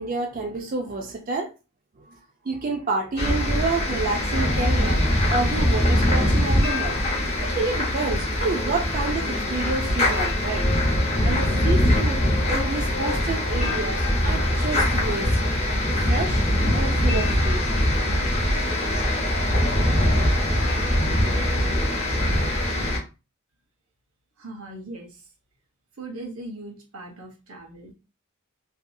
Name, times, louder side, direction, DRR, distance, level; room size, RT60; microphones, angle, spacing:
voice 1, 0.0-1.5 2.4-10.7 11.2-12.2 12.5-15.5 16.1-16.4 16.7-17.8, right 3 dB, 40° right, 0.4 m, -29 dB
sound 1, 3.2-23.0, left 1 dB, 30° left, 0.7 m, -22 dB
voice 2, 24.4-25.2 26.0-27.9, right 2 dB, 85° right, 0.9 m, -39 dB
2.6 x 2.3 x 2.5 m
head